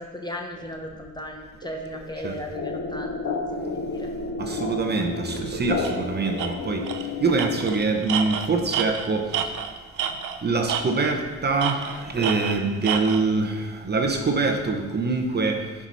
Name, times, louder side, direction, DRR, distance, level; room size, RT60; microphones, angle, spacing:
voice 1, 0.0-4.1, left 1 dB, 15° left, 2 dB, 1.0 m, -36 dB
sound 1, 2.5-8.1, left 4 dB, 60° left, 1.0 m, -31 dB
voice 2, 4.4-9.6 10.4-15.9, right 3 dB, 35° right, 3 dB, 1.0 m, -25 dB
Tools, 5.8-6.0 6.4-6.5 6.9-7.1 7.4-10.4 10.7-11.2 11.6-13.2, right 8 dB, 80° right, 0.6 m, -29 dB
9.6 x 4.9 x 4.2 m, 1.3 s
cardioid pair, 90°, 30 cm